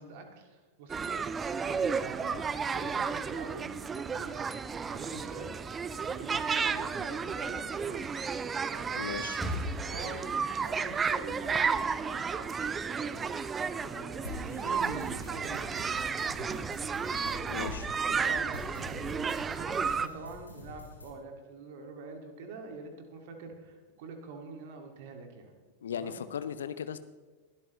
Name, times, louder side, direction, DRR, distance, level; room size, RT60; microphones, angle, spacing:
voice 1, 0.0-1.3 1.6-5.7 6.0-8.0 8.6-9.4 9.9-13.4 13.7-16.6 17.2-18.0 18.2-25.5 25.9-26.2, right 4 dB, 50° right, 4 dB, 2.3 m, -45 dB
sound 1, 0.9-20.1, right 5 dB, 20° right, 0.5 m, -33 dB
sound 2, 8.7-10.8, left 1 dB, 5° right, 3.2 m, -39 dB
voice 2, 9.0-9.4 17.5-17.9 25.8-27.0, left 7 dB, 65° left, 13 dB, 0.6 m, -37 dB
sound 3, 14.2-21.1, left 3 dB, 80° left, 2.6 m, -46 dB
20.5 x 12.0 x 3.2 m, 1.3 s
figure-of-eight pair, 90°, 0 cm